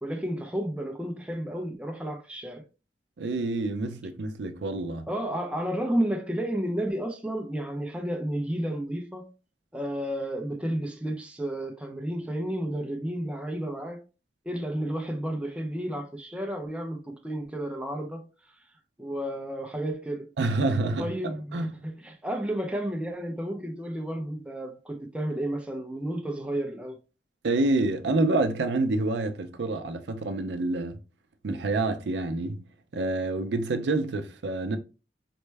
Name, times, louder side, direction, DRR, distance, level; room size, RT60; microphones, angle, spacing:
voice 1, 0.0-2.7 5.1-9.3 9.7-14.0 14.4-18.3 19.0-20.3 21.0-27.0, right 1 dB, 5° right, 0.5 m, -32 dB
voice 2, 3.2-5.1 20.4-21.7 27.4-31.0 31.4-32.6 32.9-34.8, right 2 dB, 80° right, 0.5 m, -27 dB
4.3 x 2.1 x 3.2 m
head